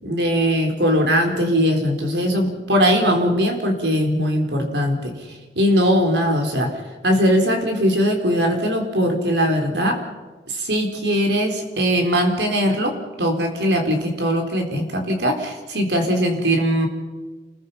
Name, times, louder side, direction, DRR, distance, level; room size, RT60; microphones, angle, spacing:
voice 1, 0.0-5.1 5.6-6.7 7.0-10.0 10.5-12.9 13.2-16.9, equal, 70° right, 4 dB, 4.2 m, -20 dB
28.0 x 21.0 x 5.7 m, 1.3 s
head